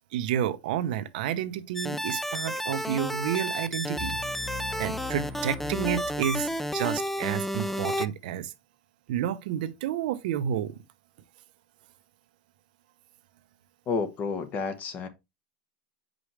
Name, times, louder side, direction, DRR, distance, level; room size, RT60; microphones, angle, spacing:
voice 1, 0.1-4.2 4.8-8.5 9.1-10.8, right 10 dB, 70° right, 0.7 m, -30 dB
sound 1, 1.8-8.1, equal, 5° left, 0.4 m, -31 dB
sound 2, 3.9-6.9, left 4 dB, 20° right, 0.9 m, -40 dB
voice 2, 13.9-15.1, left 5 dB, 30° left, 1.2 m, -30 dB
6.1 x 5.1 x 3.2 m
supercardioid pair, 140°, 5 cm